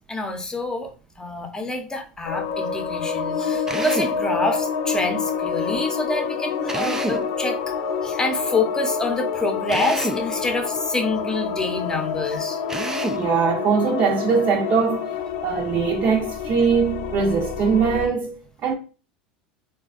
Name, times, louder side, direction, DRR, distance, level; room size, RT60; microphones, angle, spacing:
voice 1, 0.1-0.9 1.2-7.7 8.0-12.6, left 2 dB, 15° left, 0.8 m, -27 dB
sound 1, 2.3-18.1, left 6 dB, 65° left, 0.3 m, -28 dB
Drill, 3.7-4.2 6.7-7.3 9.7-10.3 12.7-13.3, right 2 dB, 10° right, 0.3 m, -29 dB
voice 2, 13.1-15.1 15.4-18.7, right 6 dB, 45° right, 0.6 m, -21 dB
4.0 x 2.3 x 2.4 m
hypercardioid pair, 90°, 5 cm